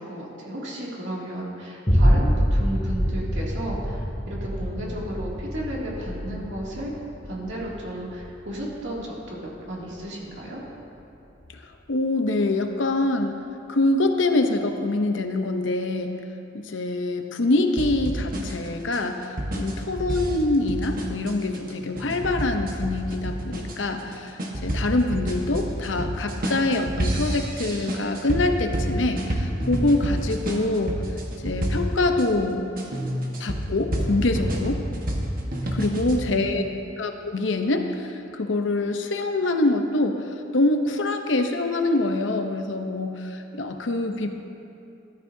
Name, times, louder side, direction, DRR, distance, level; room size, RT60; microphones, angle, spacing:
voice 1, 0.0-6.9 7.3-10.6 35.8-36.8, right 1 dB, 70° right, -5 dB, 2.5 m, -34 dB
sound 1, 1.9-10.4 10.9-11.0, equal, 25° left, 2.5 m, -26 dB
voice 2, 11.9-13.4 13.7-16.1 16.5-31.0 31.4-32.7 33.4-34.8 35.7-36.7 37.0-40.2 40.5-44.3, left 2 dB, 80° left, 6 dB, 0.8 m, -25 dB
sound 2, 17.8-32.2 32.8-36.2, equal, 50° right, 1.3 m, -29 dB
13.5 x 13.5 x 2.7 m, 2.7 s
head